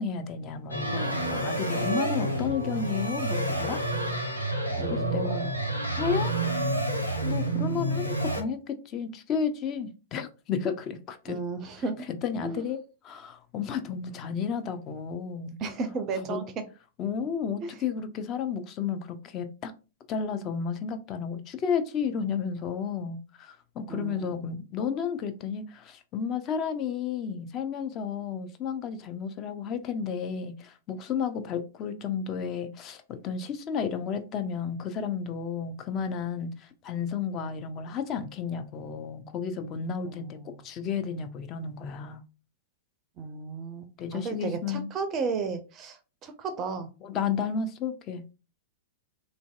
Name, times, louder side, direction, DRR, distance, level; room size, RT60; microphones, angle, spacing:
voice 1, 0.0-3.8 4.9-5.5 6.0-6.3 7.2-11.4 12.2-15.6 16.2-16.4 17.0-19.7 20.1-42.2 44.0-44.9 47.0-48.2, left 6 dB, 30° left, 0.4 m, -32 dB
sound 1, 0.7-8.4, right 1 dB, 90° left, 0.6 m, -29 dB
voice 2, 4.8-5.5 11.3-12.0 12.4-12.6 15.6-16.6 17.6-17.7 23.9-24.6 40.0-40.6 43.2-46.9, right 4 dB, 30° right, 0.4 m, -34 dB
3.1 x 2.6 x 2.3 m
figure-of-eight pair, 100°, 0 cm